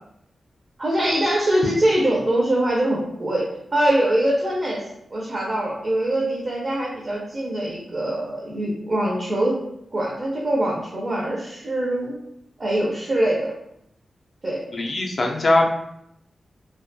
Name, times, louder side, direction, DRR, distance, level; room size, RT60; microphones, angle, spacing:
voice 1, 0.8-4.8 5.1-9.6 9.9-12.2 12.6-13.5 14.4-14.6, right 1 dB, 30° right, -3 dB, 0.4 m, -23 dB
voice 2, 14.7-15.7, left 2 dB, 40° left, 0 dB, 0.3 m, -20 dB
2.3 x 2.1 x 2.5 m, 0.76 s
wide cardioid pair, 170°, 0 cm